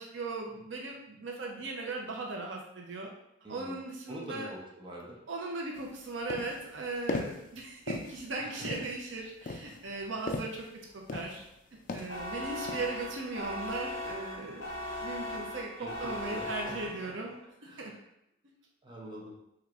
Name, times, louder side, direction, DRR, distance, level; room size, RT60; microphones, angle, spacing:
voice 1, 0.0-3.1 3.5-4.5 5.3-10.6 10.9-11.4 11.9-14.7 15.0-17.4 17.8-17.9, right 3 dB, 70° right, -1 dB, 0.7 m, -38 dB
voice 2, 3.4-3.8 4.1-5.2 8.4-8.7 9.8-10.0 15.8-16.8 17.6-17.9 18.8-19.4, right 1 dB, 25° right, -3 dB, 0.7 m, -44 dB
sound 1, 5.8-5.9 6.3-6.7 7.1-7.5 7.9-8.3 8.6-9.0 9.5-10.7 11.1-11.5 11.9-12.2 12.7-13.1, left 2 dB, 40° left, 0.3 m, -37 dB
sound 2, 12.1-17.3, left 1 dB, 60° left, 1.0 m, -39 dB
4.6 x 3.1 x 2.5 m, 0.80 s
head